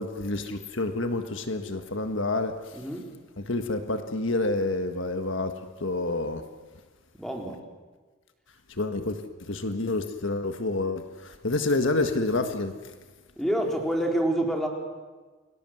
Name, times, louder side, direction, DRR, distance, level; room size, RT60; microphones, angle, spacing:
voice 1, 0.0-2.8 3.4-5.5 5.8-6.4 8.7-12.9, left 2 dB, 60° left, 7 dB, 1.6 m, -28 dB
voice 2, 2.7-3.1 7.2-7.6 13.4-14.7, right 1 dB, ahead, 1 dB, 4.3 m, -27 dB
29.5 x 23.5 x 7.9 m, 1.3 s
head